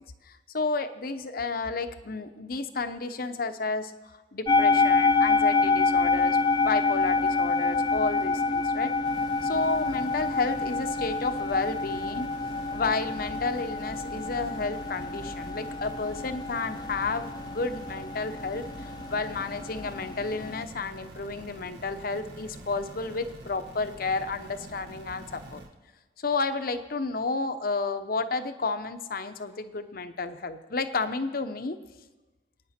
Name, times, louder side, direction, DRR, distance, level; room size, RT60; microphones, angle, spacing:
voice 1, 0.3-3.9 4.3-9.0 9.4-12.3 12.7-25.6 26.2-31.8, left 3 dB, 55° left, 10 dB, 0.9 m, -31 dB
sound 1, 4.5-20.6, left 3 dB, 25° left, 0.4 m, -27 dB
sound 2, 9.0-25.7, right 1 dB, 80° right, 1.6 m, -46 dB
27.5 x 9.5 x 4.4 m, 1.2 s
head